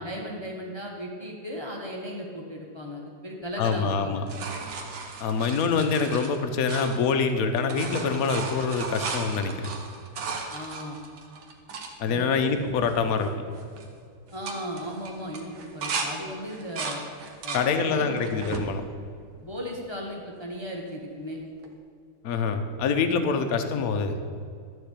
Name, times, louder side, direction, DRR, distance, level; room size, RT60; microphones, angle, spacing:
voice 1, 0.0-4.2 10.5-11.0 12.1-12.4 14.3-17.0 17.4-18.3 19.4-21.4, equal, 20° left, -1 dB, 0.9 m, -36 dB
voice 2, 3.6-4.2 5.2-9.7 12.0-13.3 17.5-18.8 22.2-24.2, left 5 dB, 60° left, 7 dB, 1.0 m, -25 dB
sound 1, 3.7-7.3 7.6-11.9 12.5-12.6 12.8-13.2 13.5-13.9 14.3-16.1 16.5-17.7 18.2-18.7 19.3-20.0 21.6-21.7, right 4 dB, 70° right, 2.0 m, -36 dB
13.0 x 4.7 x 8.3 m, 2.3 s
omnidirectional pair, 2.4 m